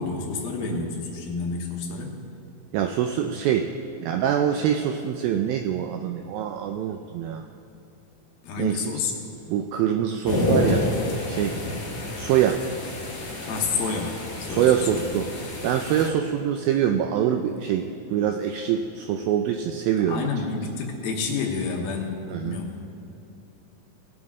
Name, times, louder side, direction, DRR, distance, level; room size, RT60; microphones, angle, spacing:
voice 1, 0.0-2.1 8.4-9.1 13.5-15.0 20.1-23.0, left 4 dB, 75° left, 1 dB, 2.7 m, -29 dB
voice 2, 2.7-3.7 4.0-7.5 8.6-8.8 9.5-10.9 11.3-11.6 12.2-12.6 14.5-15.3 15.6-20.3 22.3-22.6, right 9 dB, 85° right, 5 dB, 2.1 m, -24 dB
sound 1, 10.2-16.1, left 2 dB, 55° left, 1.1 m, -29 dB
19.0 x 8.3 x 3.6 m, 3.0 s
omnidirectional pair, 4.7 m